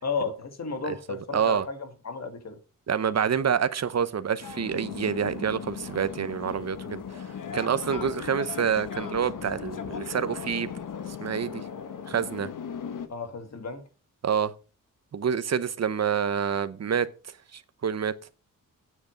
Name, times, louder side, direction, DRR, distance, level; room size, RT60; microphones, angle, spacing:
voice 1, 0.0-2.6 13.1-13.9, left 4 dB, 50° left, 1.9 m, -33 dB
voice 2, 1.3-1.6 2.9-7.3 7.5-10.7 11.2-11.6 12.1-12.5 14.2-14.5 15.1-17.1 17.5-18.2, right 7 dB, 50° right, 0.8 m, -27 dB
sound 1, 4.4-13.1, left 7 dB, 70° left, 1.2 m, -37 dB
9.6 x 8.2 x 5.1 m
wide cardioid pair, 165°, 33 cm